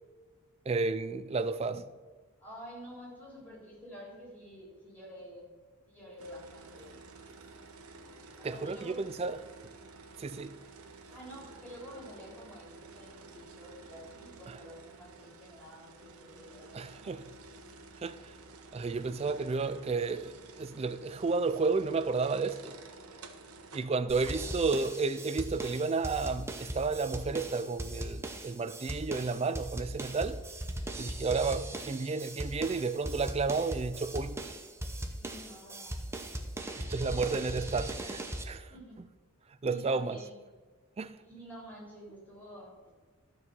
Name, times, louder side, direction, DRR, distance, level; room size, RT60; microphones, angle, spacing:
voice 1, 0.7-1.9 8.4-9.4 10.2-10.6 16.7-17.2 18.0-18.3 18.7-22.8 23.7-30.4 31.0-34.4 36.7-38.7 39.6-40.2 41.0-41.2, right 4 dB, 30° right, 0.3 m, -32 dB
voice 2, 2.4-5.5 5.9-7.0 8.4-9.0 11.1-17.2 23.9-24.5 35.2-36.1 36.7-37.4 38.7-39.1 39.6-40.4 41.2-42.9, equal, 10° left, 3.7 m, -49 dB
sound 1, 6.2-24.7, right 3 dB, 80° right, 1.0 m, -52 dB
sound 2, 24.1-38.4, right 1 dB, 10° right, 0.7 m, -39 dB
12.5 x 4.7 x 6.9 m
head